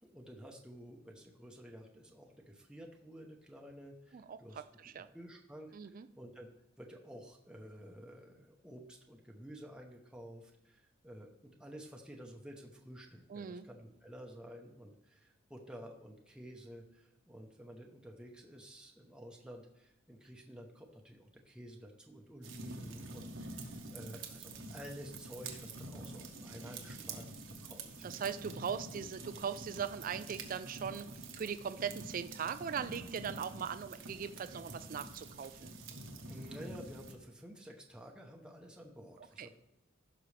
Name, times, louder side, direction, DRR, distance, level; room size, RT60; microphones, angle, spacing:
voice 1, 0.0-4.6 5.1-6.5 6.8-28.4 36.3-39.6, equal, 5° right, 0 dB, 0.8 m, -51 dB
voice 2, 5.7-6.1 13.3-13.6 28.0-31.1 31.4-35.7 39.4-39.5, right 7 dB, 45° right, 12 dB, 0.4 m, -39 dB
sound 1, 22.4-37.1, right 2 dB, 80° right, 1.2 m, -47 dB
15.5 x 6.0 x 3.3 m, 0.85 s
head